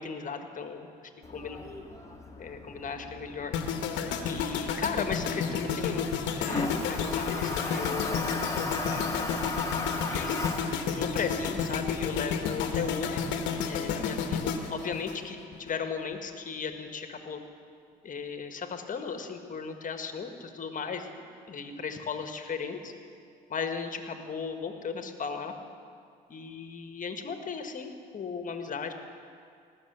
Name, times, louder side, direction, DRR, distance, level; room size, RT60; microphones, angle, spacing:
voice 1, 0.0-1.6 2.4-3.6 4.2-6.1 6.3-8.5 8.8-9.3 10.1-10.4 10.9-13.2 13.6-17.4 18.0-21.1 21.5-22.9 23.5-25.5 26.3-28.9, left 5 dB, 40° left, 6 dB, 1.5 m, -36 dB
Toilet flush, 1.2-13.5, left 2 dB, 15° left, 1.8 m, -38 dB
sound 1, 3.5-15.7 16.0-16.3, left 6 dB, 70° left, 1.1 m, -31 dB
18.5 x 6.5 x 8.0 m, 2.3 s
hypercardioid pair, 65°, 20 cm